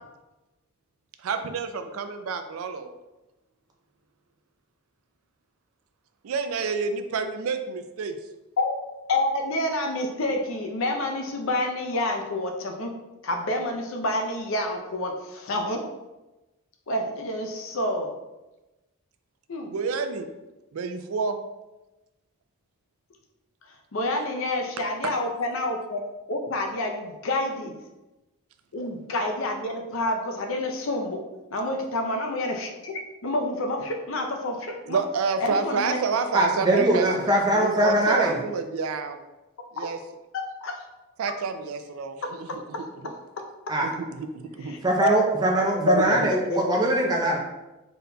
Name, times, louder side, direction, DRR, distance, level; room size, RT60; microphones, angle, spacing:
voice 1, 1.2-2.9 6.2-8.2 19.7-20.3 20.7-21.4 25.0-25.1 34.9-39.2 39.7-40.0 41.2-42.6 43.8-44.8 45.8-46.3, right 5 dB, 75° right, 8 dB, 0.4 m, -29 dB
voice 2, 9.1-12.9 13.2-15.8 16.9-18.1 19.5-19.7 23.7-26.0 26.3-27.7 28.7-31.2 31.5-35.0 35.4-36.0 40.3-40.8 42.2-43.5 44.6-45.1 45.9-46.0 46.3-46.6, left 1 dB, 65° left, 3 dB, 0.5 m, -28 dB
voice 3, 36.3-38.4 43.7-43.9 44.8-47.4, right 1 dB, 20° right, -2 dB, 0.5 m, -22 dB
4.0 x 3.9 x 2.2 m, 1.0 s
head